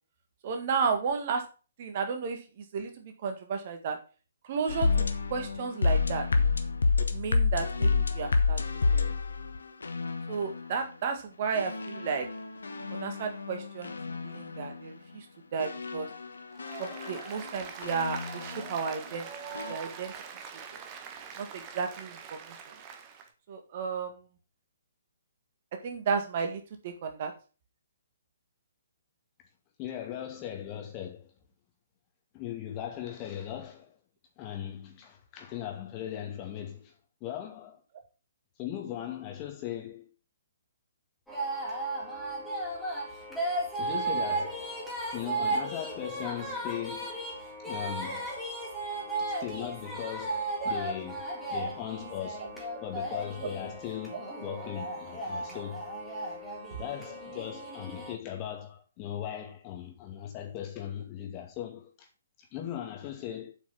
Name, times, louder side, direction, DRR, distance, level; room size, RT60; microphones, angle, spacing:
voice 1, 0.4-1.4 1.8-2.4 2.7-4.0 4.5-4.9 5.3-6.3 7.0-8.6 8.9-9.0 10.3-12.3 12.9-13.9 14.2-15.3 15.5-16.1 16.8-19.3 19.7-20.1 21.4-22.6 23.5-24.2 25.8-27.3 50.6-50.7, right 5 dB, 40° right, 1.8 m, -33 dB
sound 1, 4.7-10.7 11.5-14.8 15.6-18.7 19.5-19.7, left 4 dB, 65° left, 1.2 m, -29 dB
Applause, 16.5-23.3, right 7 dB, 25° right, 1.3 m, -43 dB
voice 2, 29.8-31.3 32.3-33.9 34.4-36.9 37.2-37.8 38.6-40.1 43.8-44.7 45.1-47.2 47.6-48.3 49.4-51.2 51.5-52.5 52.8-54.1 54.4-55.9 56.8-62.1 62.5-63.5, left 11 dB, 25° left, 2.3 m, -38 dB
sound 2, 41.3-58.1, right 2 dB, 5° left, 3.6 m, -35 dB
8.0 x 6.0 x 5.9 m
figure-of-eight pair, 130°, 0 cm